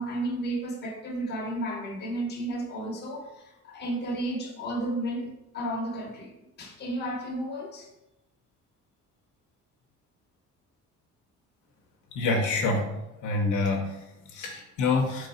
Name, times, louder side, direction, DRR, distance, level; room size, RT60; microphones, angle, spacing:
voice 1, 0.0-6.3 6.6-7.9, right 1 dB, 35° left, -2 dB, 0.9 m, -33 dB
voice 2, 12.1-12.9 13.2-15.3, left 3 dB, 75° left, 1 dB, 0.7 m, -27 dB
3.9 x 3.1 x 4.2 m, 0.93 s
cardioid pair, 170°, 30 cm